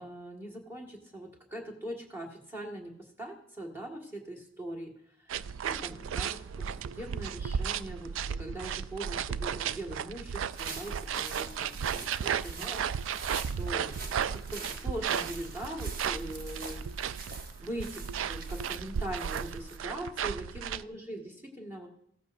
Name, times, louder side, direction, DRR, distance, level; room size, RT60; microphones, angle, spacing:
voice 1, 0.0-4.9 5.2-5.3 5.6-6.4 6.7-8.1 8.4-16.9 17.6-21.9, right 1 dB, 10° right, 0 dB, 1.8 m, -41 dB
sound 1, 5.3-20.8, right 8 dB, 80° right, 0.3 m, -34 dB
sound 2, 10.3-19.8, right 3 dB, 50° right, 1.0 m, -44 dB
15.5 x 14.0 x 2.6 m, 0.71 s
head